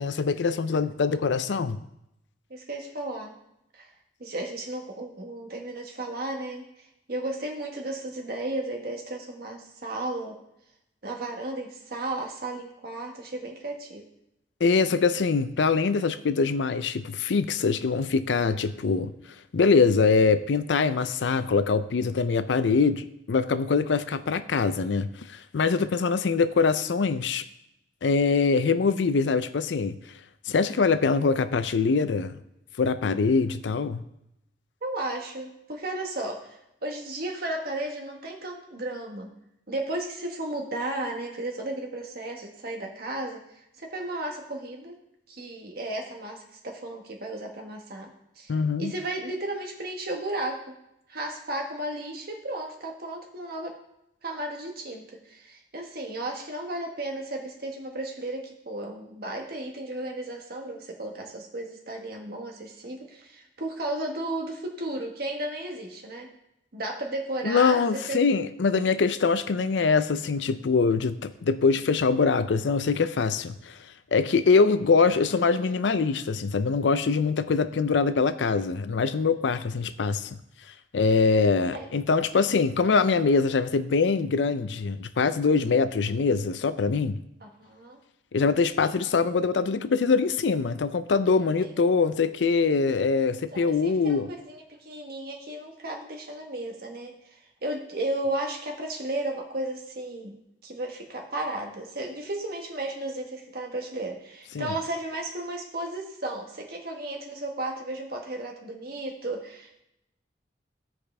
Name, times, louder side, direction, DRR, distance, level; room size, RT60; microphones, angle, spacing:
voice 1, 0.0-1.8 14.6-19.1 19.5-27.4 28.0-30.0 30.5-32.4 32.8-34.0 48.5-48.9 67.4-73.8 74.1-80.3 80.9-87.2 88.3-94.3 104.5-104.7, left 4 dB, 85° left, 13 dB, 0.5 m, -23 dB
voice 2, 2.5-3.3 3.7-3.9 4.2-6.7 7.1-10.4 11.0-14.0 34.8-36.6 36.8-39.3 39.7-43.4 43.8-45.0 45.3-48.1 48.4-48.5 48.8-50.8 51.1-53.8 54.2-66.3 66.7-68.2 68.7-68.8 74.7-74.8 81.7-81.9 87.4-88.0 91.4-91.8 93.5-100.3 100.6-109.8, right 1 dB, 60° right, 2 dB, 1.4 m, -34 dB
15.0 x 5.1 x 3.3 m, 0.82 s
head